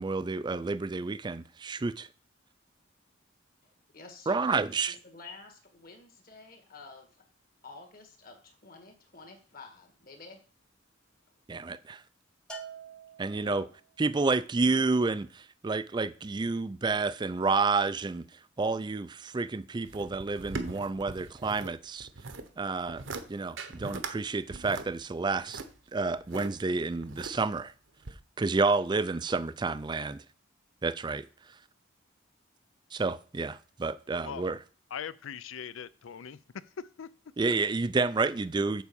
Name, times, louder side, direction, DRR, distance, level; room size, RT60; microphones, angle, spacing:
voice 1, 0.0-2.1 4.3-4.9 11.5-12.0 13.2-13.6 14.0-18.3 18.6-22.1 22.6-23.0 23.3-25.6 25.9-27.7 28.4-30.2 30.8-31.2 32.9-34.6 37.4-38.8, right 3 dB, 20° right, 0.4 m, -29 dB
voice 2, 3.9-4.6 4.9-7.1 7.6-10.4 13.4-13.7, left 3 dB, 45° left, 1.8 m, -49 dB
Bell, 12.5-13.9, right 4 dB, 5° left, 0.9 m, -45 dB
sound 1, 19.9-21.7 22.0-22.5 22.9-23.2 23.6-24.1 24.5-26.5 27.0-27.6 28.0-28.1, right 3 dB, 65° right, 0.9 m, -40 dB
voice 3, 34.9-36.4 36.8-37.1, left 7 dB, 75° left, 0.4 m, -40 dB
7.2 x 4.7 x 6.9 m
head